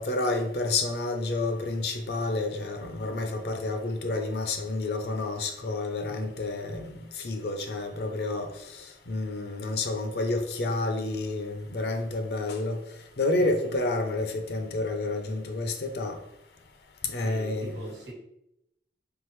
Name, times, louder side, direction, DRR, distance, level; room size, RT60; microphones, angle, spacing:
voice 1, 0.0-8.5 9.1-12.8 13.2-16.2 17.1-17.8, left 2 dB, 70° left, 6 dB, 0.5 m, -29 dB
voice 2, 13.4-13.8 17.2-18.1, right 1 dB, 90° right, -2 dB, 1.2 m, -43 dB
3.7 x 3.3 x 3.1 m, 0.81 s
head